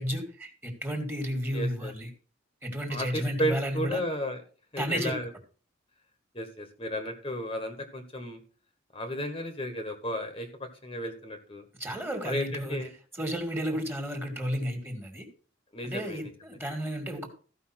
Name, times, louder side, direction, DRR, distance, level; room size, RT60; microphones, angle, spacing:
voice 1, 0.0-2.1 2.6-4.0 4.8-5.1 11.8-12.8 13.2-15.3 15.8-17.3, equal, 10° right, 5 dB, 2.3 m, -32 dB
voice 2, 1.5-1.9 2.9-4.4 4.7-5.3 6.3-8.4 8.9-10.5 10.8-11.6 12.2-12.9 15.7-16.3, equal, 30° left, 6 dB, 1.5 m, -33 dB
14.5 x 5.5 x 5.9 m, 0.39 s
head